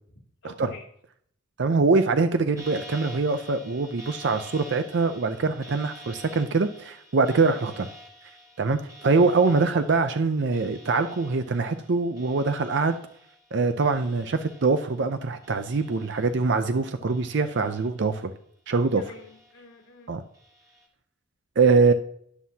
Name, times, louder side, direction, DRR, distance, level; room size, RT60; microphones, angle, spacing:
voice 1, 0.4-0.9 7.3-7.6 9.2-9.4 19.0-20.2, left 2 dB, 75° left, -1 dB, 2.2 m, -48 dB
voice 2, 1.6-7.9 8.6-13.0 13.5-18.3 18.7-19.0 20.1-20.2 21.6-21.9, right 4 dB, 60° right, 9 dB, 0.5 m, -23 dB
sound 1, 2.6-15.1 15.4-16.6 17.1-18.3 18.7-19.8 20.3-20.9, equal, 15° right, 1.6 m, -48 dB
13.0 x 9.4 x 2.8 m, 0.66 s
head